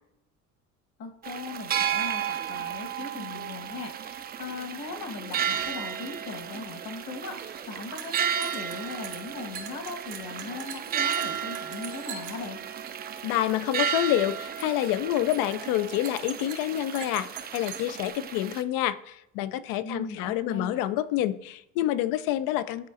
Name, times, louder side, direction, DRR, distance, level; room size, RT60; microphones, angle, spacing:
voice 1, 1.0-12.6 19.8-20.8, left 4 dB, 55° left, 3 dB, 1.3 m, -39 dB
sound 1, 1.2-18.6, right 9 dB, 30° right, 0.4 m, -33 dB
sound 2, 6.9-7.0 7.2-13.0 13.2-13.7 14.0-14.3 14.6-14.9 15.2-18.1, right 8 dB, 85° right, 1.0 m, -43 dB
voice 2, 13.2-17.3 17.5-22.9, left 13 dB, 80° left, 14 dB, 0.5 m, -27 dB
10.0 x 4.0 x 2.5 m, 0.82 s
cardioid pair, 110°, 33 cm